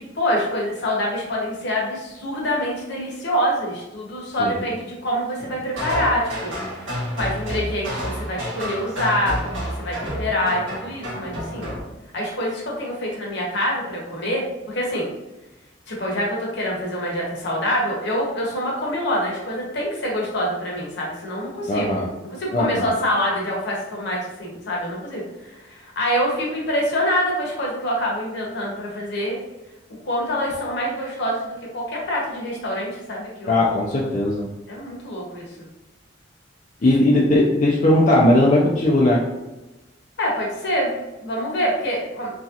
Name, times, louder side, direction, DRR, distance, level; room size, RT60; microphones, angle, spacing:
voice 1, 0.0-11.7 12.1-15.1 15.9-21.9 22.4-29.4 30.0-33.6 34.7-35.5 40.2-40.9 41.2-42.3, equal, 65° left, -3 dB, 0.9 m, -25 dB
sound 1, 5.7-11.8, equal, 85° right, 1.3 m, -30 dB
voice 2, 21.7-22.1 22.5-22.9 33.5-34.5 36.8-39.2, left 1 dB, 40° left, -5 dB, 0.4 m, -18 dB
3.0 x 2.7 x 2.4 m, 1.1 s
head